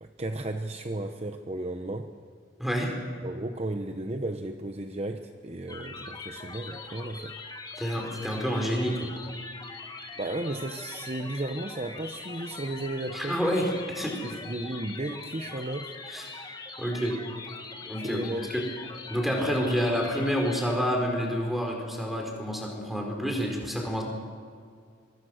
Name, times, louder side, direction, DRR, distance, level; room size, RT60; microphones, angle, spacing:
voice 1, 0.0-2.1 3.2-7.3 10.2-13.4 14.2-15.9 18.0-18.5, right 1 dB, 35° right, 6 dB, 0.9 m, -34 dB
voice 2, 2.6-2.9 7.8-9.1 13.1-14.1 16.1-17.2 17.8-18.2 18.5-18.7 19.1-24.0, equal, ahead, 1 dB, 4.5 m, -28 dB
sound 1, 5.7-20.7, left 3 dB, 20° left, 1.9 m, -42 dB
24.5 x 24.0 x 6.5 m, 2.1 s
head